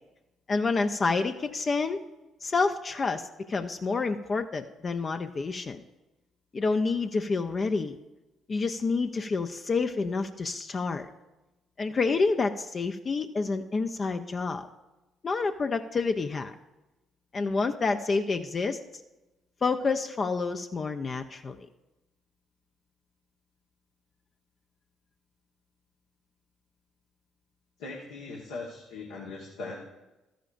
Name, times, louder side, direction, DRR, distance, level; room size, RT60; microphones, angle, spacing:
voice 1, 0.5-2.0 2.4-5.8 6.5-8.0 8.5-11.1 11.8-14.7 15.2-16.5 17.3-18.8 19.6-21.7, left 4 dB, 40° left, 7 dB, 0.5 m, -28 dB
voice 2, 27.8-29.8, left 3 dB, 80° left, -3 dB, 1.3 m, -40 dB
13.5 x 10.0 x 2.5 m, 1.0 s
hypercardioid pair, 50°, 0 cm